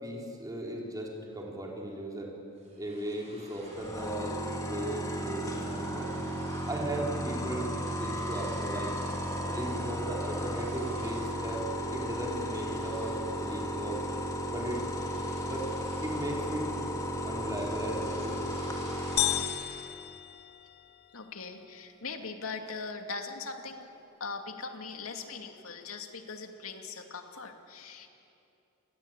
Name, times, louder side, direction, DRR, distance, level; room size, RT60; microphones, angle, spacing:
voice 1, 0.0-2.4 2.8-6.2 6.7-9.0 9.4-14.0 14.5-14.8 15.4-15.7 16.0-16.7 17.2-18.4, right 1 dB, 15° right, -1 dB, 3.8 m, -37 dB
sound 1, 2.6-4.2 4.5-4.8 5.1-6.9 7.2-9.3 9.8-11.4 11.8-12.1 12.5-17.1 17.4-20.1, right 2 dB, 35° right, 7.0 m, -54 dB
sound 2, 3.7-19.4, equal, 15° left, 2.8 m, -34 dB
sound 3, 19.2-21.1, left 13 dB, 50° left, 0.6 m, -33 dB
voice 2, 21.1-23.9 24.2-28.1, left 4 dB, 80° left, 5 dB, 2.5 m, -40 dB
28.5 x 21.0 x 9.1 m, 2.8 s
head